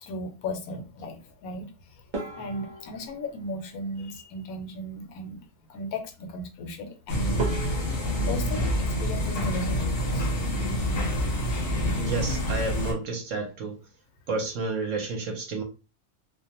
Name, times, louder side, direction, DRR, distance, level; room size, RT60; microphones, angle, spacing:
voice 1, 0.0-2.0 2.3-7.7 8.2-10.3, left 1 dB, 75° left, 1.0 m, -36 dB
sound 1, 2.1-4.6 6.8-6.9 7.4-10.1 10.4-11.2 11.5-11.7 12.0-12.1 12.7-13.0, right 3 dB, 40° right, 0.8 m, -40 dB
sound 2, 7.1-12.9, equal, 55° left, 0.7 m, -27 dB
voice 2, 11.9-13.8 14.3-15.6, right 3 dB, 65° right, 0.9 m, -30 dB
2.5 x 2.1 x 2.8 m
omnidirectional pair, 1.6 m